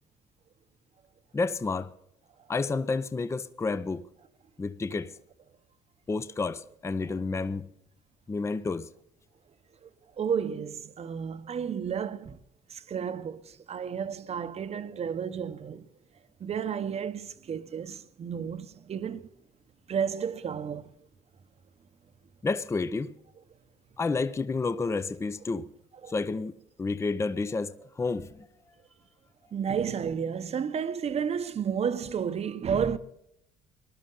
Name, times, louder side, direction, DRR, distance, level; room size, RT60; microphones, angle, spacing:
voice 1, 1.3-1.9 2.5-4.1 4.6-5.2 6.1-7.7 8.3-8.9 22.4-23.1 24.0-25.7 26.1-28.5, left 3 dB, 15° left, 0.5 m, -30 dB
voice 2, 10.2-12.4 12.7-15.9 16.4-19.3 19.9-20.9 26.0-26.1 29.5-33.0, right 7 dB, 40° right, 0.8 m, -32 dB
20.5 x 11.5 x 3.9 m
cardioid pair, 110°, 17 cm